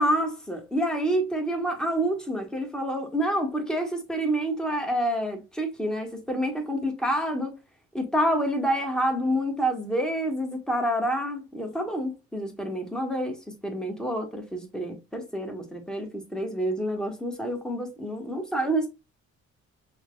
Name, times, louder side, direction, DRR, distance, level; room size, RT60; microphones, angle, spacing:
voice 1, 0.0-7.5 7.9-13.3 13.6-18.9, right 1 dB, ahead, 1.2 m, -28 dB
5.7 x 2.3 x 2.2 m
cardioid pair, 90°, 30 cm